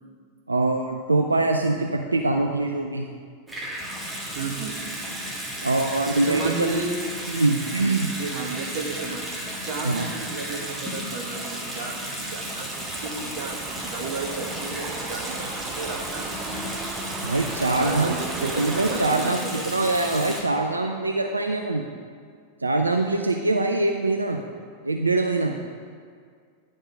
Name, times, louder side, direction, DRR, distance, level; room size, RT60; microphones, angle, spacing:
voice 1, 0.5-3.1 5.6-6.8 7.3-8.1 9.8-10.1 17.2-18.2 18.6-21.8 22.6-24.4 24.8-25.6, right 2 dB, 80° right, 4 dB, 0.4 m, -23 dB
Water tap faucet / Sink (filling or washing) / Bathtub (filling or washing), 3.5-20.4, equal, 5° right, 1.7 m, -33 dB
voice 2, 4.3-4.8 6.1-7.0 8.1-9.3 9.6-16.3 17.8-19.6, right 4 dB, 45° right, 3 dB, 1.1 m, -33 dB
sound 1, 11.9-20.3, right 4 dB, 25° right, 0.6 m, -38 dB
10.0 x 5.3 x 5.2 m, 2.1 s
figure-of-eight pair, 90°, 0 cm